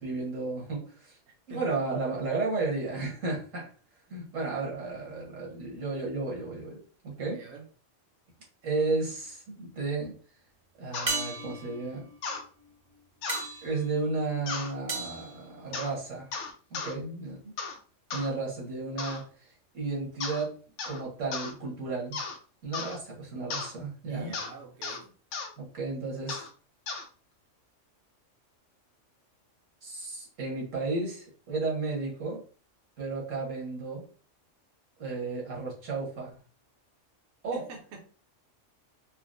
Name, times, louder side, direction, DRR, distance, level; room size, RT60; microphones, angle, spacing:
voice 1, 0.0-1.2 1.5-3.7 4.1-7.4 8.6-10.2 10.8-12.1 13.6-16.3 16.7-17.5 18.1-22.2 22.6-24.3 25.6-26.4 29.8-32.4 33.0-34.0 35.0-36.3 37.4-37.6, right 3 dB, 90° right, 1.7 m, -33 dB
voice 2, 1.3-1.8 7.3-7.7 24.0-25.2 37.5-38.1, right 4 dB, 65° right, 0.9 m, -45 dB
sound 1, 8.7-9.3 11.1-16.2 20.7-20.8, right 3 dB, 35° right, 0.6 m, -38 dB
sound 2, 10.9-11.1 12.2-12.4 13.2-13.5 14.5-14.7 15.7-15.9 16.3-16.9 17.6-17.8 18.1-18.3 19.0-19.2 20.2-20.5 20.8-21.0 21.3-21.5 22.1-22.4 22.7-23.0 23.5-23.7 24.3-24.5 24.8-25.0 25.3-25.5 26.3-26.5 26.9-27.1, left 4 dB, 75° left, 1.0 m, -35 dB
4.2 x 2.0 x 2.5 m
omnidirectional pair, 1.3 m